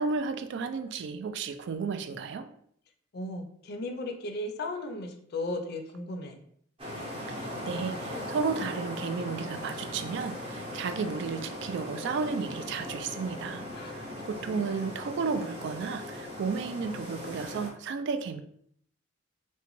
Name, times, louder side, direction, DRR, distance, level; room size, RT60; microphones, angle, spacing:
voice 1, 0.0-2.5 7.3-18.4, right 5 dB, 60° right, 8 dB, 0.3 m, -33 dB
voice 2, 3.1-6.4 13.7-14.6, left 2 dB, 55° left, 5 dB, 0.4 m, -36 dB
sound 1, 6.8-17.7, left 1 dB, 25° right, 0.7 m, -39 dB
3.7 x 2.2 x 2.9 m, 0.66 s
head